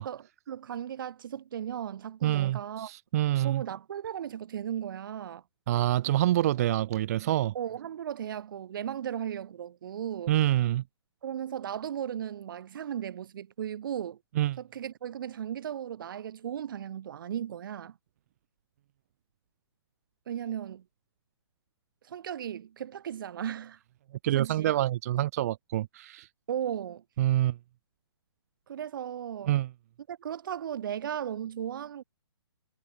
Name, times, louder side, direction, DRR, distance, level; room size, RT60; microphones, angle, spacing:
voice 1, 0.0-2.9 3.4-5.4 7.5-10.4 11.2-14.2 14.6-18.0 20.3-20.8 22.0-23.8 24.3-24.7 26.5-27.0 28.7-29.6 30.1-32.0, right 9 dB, 50° right, 1.6 m, -36 dB
voice 2, 2.2-3.6 5.7-7.5 10.3-10.8 14.4-14.6 24.2-26.3 27.2-27.6 29.5-29.7, right 13 dB, 35° right, 0.4 m, -26 dB
figure-of-eight pair, 130°, 14 cm